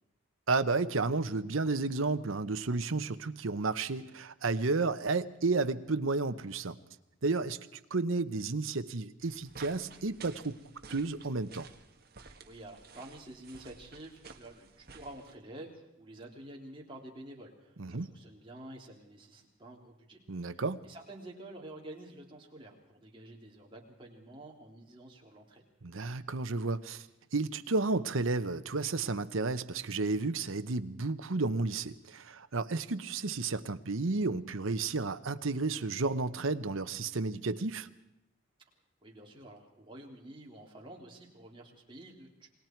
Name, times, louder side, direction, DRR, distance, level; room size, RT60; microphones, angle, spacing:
voice 1, 0.5-6.8 7.2-10.6 10.9-11.7 17.8-18.1 20.3-20.8 25.8-27.1 27.3-37.9, right 3 dB, 80° right, 10 dB, 0.9 m, -32 dB
sound 1, 9.2-15.3, right 5 dB, 50° right, 1.5 m, -53 dB
voice 2, 12.4-25.6 39.0-42.5, right 1 dB, 25° right, -1 dB, 3.4 m, -49 dB
28.5 x 20.5 x 4.6 m, 0.88 s
head